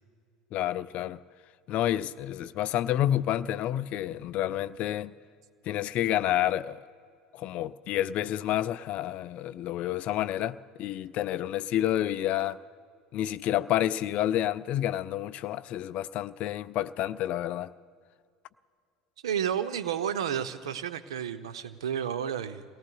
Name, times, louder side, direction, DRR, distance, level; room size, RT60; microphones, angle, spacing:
voice 1, 0.5-1.2 1.7-5.1 5.7-6.8 7.3-12.6 13.1-17.7, left 12 dB, 45° left, 0.4 m, -29 dB
voice 2, 19.2-22.6, right 9 dB, 75° right, 0.6 m, -31 dB
29.5 x 18.5 x 2.3 m
figure-of-eight pair, 75°, 3 cm